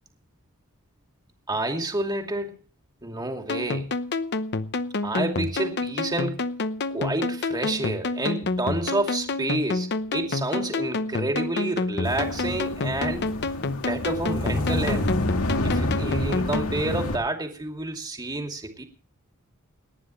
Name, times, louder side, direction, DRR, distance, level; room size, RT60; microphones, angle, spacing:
voice 1, 1.5-2.6 3.0-3.9 5.0-6.5 6.9-13.2 13.7-15.1 15.6-18.8, right 2 dB, 20° right, 3 dB, 2.6 m, -29 dB
sound 1, 3.5-16.7, left 3 dB, 50° left, 0.8 m, -29 dB
sound 2, 12.0-17.2, left 1 dB, 85° left, 2.2 m, -28 dB
30.0 x 10.0 x 3.2 m, 0.39 s
head